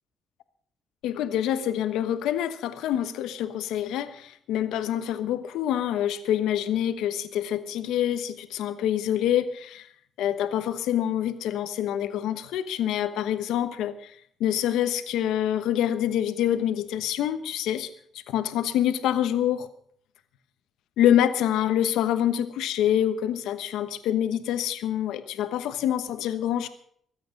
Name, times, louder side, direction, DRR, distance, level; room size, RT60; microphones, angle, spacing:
voice 1, 1.0-9.9 10.2-14.1 14.4-17.9 18.3-19.7 21.0-26.7, left 11 dB, 90° left, 10 dB, 1.1 m, -26 dB
23.5 x 8.7 x 5.3 m, 0.64 s
cardioid pair, 90°, 0 cm